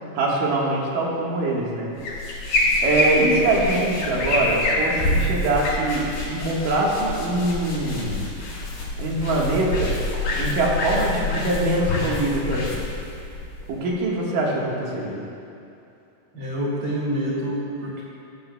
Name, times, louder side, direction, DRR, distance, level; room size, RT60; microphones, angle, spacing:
voice 1, 0.1-1.9 2.8-8.3 9.0-9.9 10.4-12.8 13.7-15.2, right 2 dB, 85° right, -3 dB, 3.2 m, -23 dB
sound 1, 2.0-13.9, left 2 dB, 85° left, 4.1 m, -26 dB
voice 2, 16.3-18.0, right 1 dB, 45° right, -6 dB, 2.9 m, -27 dB
14.0 x 13.5 x 2.3 m, 2.7 s
omnidirectional pair, 3.7 m